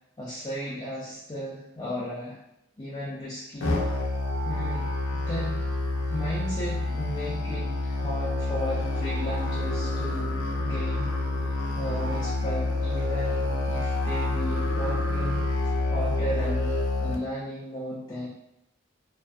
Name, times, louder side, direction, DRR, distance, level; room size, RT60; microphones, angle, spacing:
voice 1, 0.2-2.4 2.8-3.7 4.5-4.9 5.3-5.6 6.1-11.1 11.7-15.4 15.9-16.7 17.0-18.3, equal, 20° left, -8 dB, 0.4 m, -35 dB
Musical instrument, 3.6-17.1, left 2 dB, 90° left, 0.4 m, -28 dB
2.5 x 2.3 x 2.2 m, 0.83 s
head